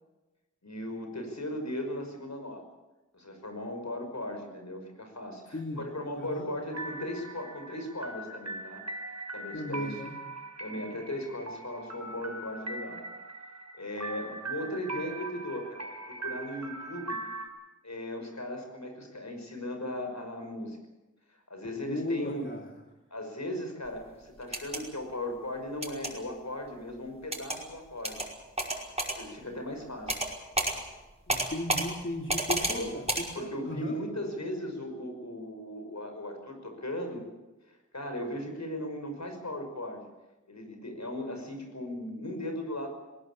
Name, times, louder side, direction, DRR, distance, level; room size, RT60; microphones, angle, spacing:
voice 1, 0.6-2.6 3.1-8.8 9.3-9.9 10.6-13.0 13.8-17.2 17.8-20.8 21.3-22.5 23.1-28.2 29.2-30.3 32.6-32.9 33.3-37.3 37.7-40.1 40.5-42.9, left 1 dB, 65° left, 5 dB, 5.7 m, -37 dB
voice 2, 5.5-5.8 6.2-6.5 9.5-10.1 21.9-22.7 31.3-34.0, left 1 dB, 40° left, 1 dB, 2.6 m, -35 dB
sound 1, 6.7-17.5, right 2 dB, 60° right, 6.1 m, -41 dB
sound 2, 24.4-24.8 25.8-26.1 27.3-27.6 28.0-28.3 28.6-29.2 30.1-30.3 30.6-30.7 31.3-31.9 32.3-32.8 33.1-33.2, right 1 dB, 20° right, 5.4 m, -29 dB
20.0 x 18.5 x 8.7 m, 1.1 s
wide cardioid pair, 40°, 30 cm